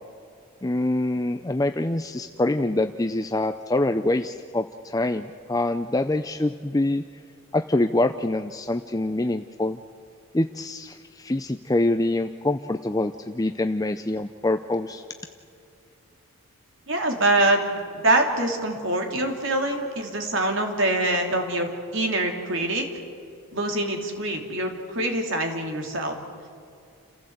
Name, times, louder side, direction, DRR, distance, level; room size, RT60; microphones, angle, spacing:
voice 1, 0.6-7.0 7.5-9.8 10.3-15.0, left 2 dB, 15° left, 9 dB, 0.4 m, -25 dB
voice 2, 16.9-22.9 23.5-26.2, right 2 dB, 60° right, 3 dB, 2.9 m, -24 dB
29.5 x 15.5 x 8.0 m, 2.4 s
head